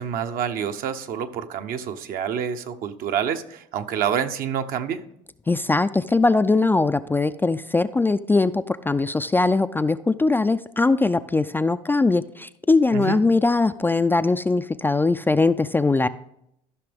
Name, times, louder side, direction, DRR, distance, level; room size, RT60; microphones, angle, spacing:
voice 1, 0.0-5.0 12.9-13.2, right 8 dB, 60° right, 8 dB, 0.8 m, -27 dB
voice 2, 5.5-16.1, left 3 dB, 10° left, 11 dB, 0.3 m, -21 dB
14.0 x 5.9 x 3.5 m, 0.76 s
hypercardioid pair, 75°, 17 cm